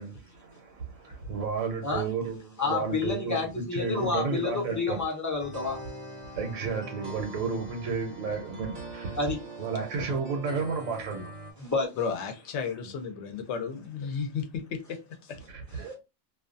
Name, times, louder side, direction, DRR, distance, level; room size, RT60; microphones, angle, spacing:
voice 1, 0.0-5.0 6.3-9.2 9.6-11.5 15.5-16.0, right 5 dB, 70° right, 1.0 m, -32 dB
voice 2, 2.6-5.8 9.1-9.4 11.6-11.9 15.9-16.0, left 4 dB, 20° left, 0.5 m, -29 dB
sound 1, 5.4-11.5, right 1 dB, 45° right, 0.7 m, -43 dB
voice 3, 12.0-15.4, left 6 dB, 65° left, 0.8 m, -34 dB
2.4 x 2.2 x 2.5 m
omnidirectional pair, 1.4 m